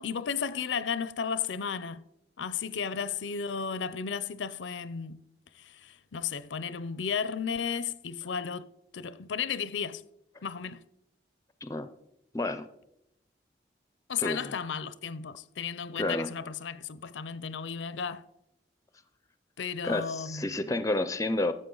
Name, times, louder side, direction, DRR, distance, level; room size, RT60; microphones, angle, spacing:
voice 1, 0.0-2.0 2.4-5.2 5.5-8.7 8.9-10.0 10.4-10.8 14.1-18.2 19.6-20.8, left 6 dB, 90° left, 0.5 m, -34 dB
voice 2, 12.3-12.7 14.2-14.5 16.0-16.3 19.8-21.5, left 2 dB, 15° left, 0.5 m, -30 dB
13.5 x 7.9 x 3.8 m
head